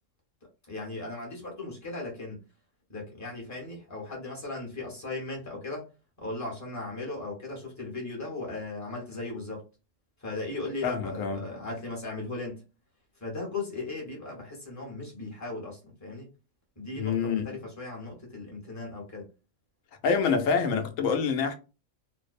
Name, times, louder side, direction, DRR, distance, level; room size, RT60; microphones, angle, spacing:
voice 1, 0.7-2.4 2.9-5.9 6.2-9.6 10.2-12.6 13.2-16.3 16.8-19.3, left 2 dB, 15° left, 0.9 m, -37 dB
voice 2, 10.8-11.4 17.0-17.6 20.0-21.5, left 5 dB, 80° left, 1.0 m, -26 dB
2.6 x 2.0 x 2.4 m
omnidirectional pair, 1.4 m